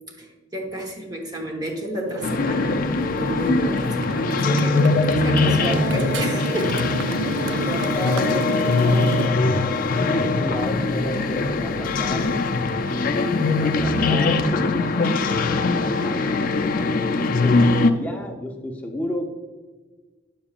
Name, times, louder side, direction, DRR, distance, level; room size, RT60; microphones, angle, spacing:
voice 1, 0.2-2.8 3.2-4.8 5.1-6.7, right 1 dB, 20° right, 0 dB, 1.1 m, -30 dB
Motorcycle, 2.1-9.3, right 4 dB, 65° right, 0.3 m, -31 dB
sound 1, 2.2-17.9, left 3 dB, 40° left, 0.4 m, -21 dB
voice 2, 5.5-7.0 7.5-9.4 10.1-12.4 12.9-17.0 17.4-19.3, left 1 dB, 10° left, 1 dB, 0.7 m, -32 dB
9.6 x 6.8 x 2.4 m, 1.3 s
head